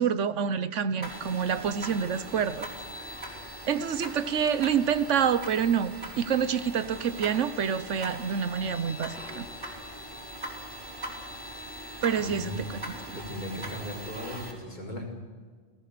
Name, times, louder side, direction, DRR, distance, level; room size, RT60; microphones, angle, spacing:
voice 1, 0.0-2.7 3.7-9.5 12.0-13.0, right 7 dB, 80° right, 14 dB, 1.3 m, -27 dB
sound 1, 1.0-14.5, right 1 dB, 45° right, 4.5 m, -41 dB
voice 2, 12.2-12.7 13.1-15.1, equal, 40° left, -1 dB, 5.0 m, -37 dB
28.5 x 18.5 x 6.9 m, 1.5 s
omnidirectional pair, 1.2 m